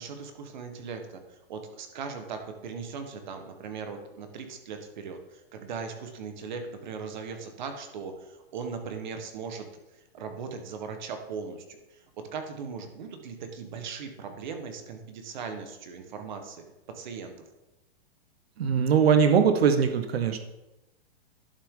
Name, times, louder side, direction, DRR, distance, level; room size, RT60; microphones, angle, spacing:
voice 1, 0.0-9.7 9.9-17.3, right 5 dB, 50° right, 6 dB, 1.3 m, -39 dB
voice 2, 18.6-20.4, right 7 dB, 85° right, 8 dB, 1.1 m, -21 dB
11.0 x 6.1 x 3.8 m, 0.97 s
hypercardioid pair, 175°, 30 cm